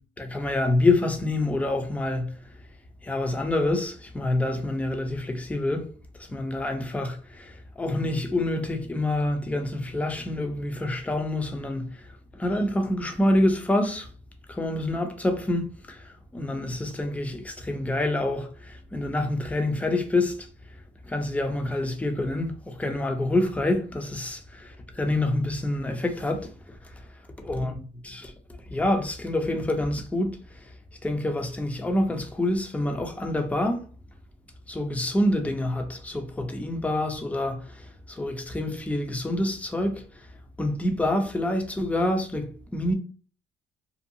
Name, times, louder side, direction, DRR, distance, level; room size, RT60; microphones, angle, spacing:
voice 1, 0.2-2.3 3.0-5.9 6.2-12.0 12.3-14.1 14.5-20.5 21.0-26.5 27.4-28.3 28.7-30.7 31.0-33.9 34.7-40.0 40.6-42.9, left 1 dB, 10° left, 0.5 m, -27 dB
2.6 x 2.3 x 2.7 m
cardioid pair, 110°, 17 cm